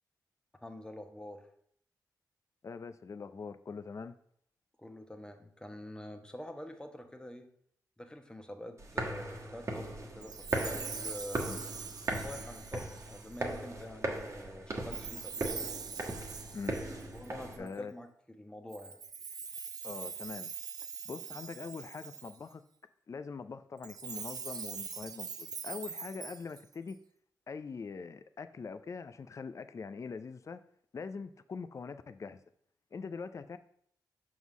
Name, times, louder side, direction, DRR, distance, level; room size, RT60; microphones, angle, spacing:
voice 1, 0.6-1.5 4.8-7.5 8.0-11.6 12.1-15.6 17.1-19.0, left 1 dB, 10° left, 6 dB, 1.0 m, -46 dB
voice 2, 2.6-4.2 11.5-11.6 16.5-16.8 17.6-17.9 19.8-20.5 21.0-22.6 23.1-27.0 27.5-30.6 30.9-32.4 32.9-33.6, left 5 dB, 45° left, 11 dB, 0.4 m, -43 dB
sound 1, 8.8-17.6, right 2 dB, 40° right, 1.2 m, -38 dB
Chime, 10.2-13.6 14.9-17.8 18.7-22.5 23.8-26.9, right 5 dB, 65° right, 0.6 m, -43 dB
6.1 x 3.7 x 6.0 m, 0.65 s
cardioid pair, 60°, 7 cm